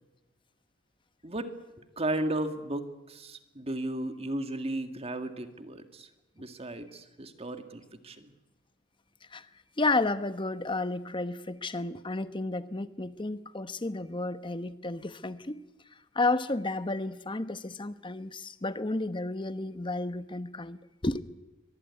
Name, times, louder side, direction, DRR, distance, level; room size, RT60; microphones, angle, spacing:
voice 1, 2.0-6.1 6.4-8.3, right 1 dB, 30° right, 1.9 m, -35 dB
voice 2, 9.8-15.6 16.1-21.2, left 2 dB, 25° left, 1.0 m, -32 dB
23.5 x 20.0 x 9.7 m
head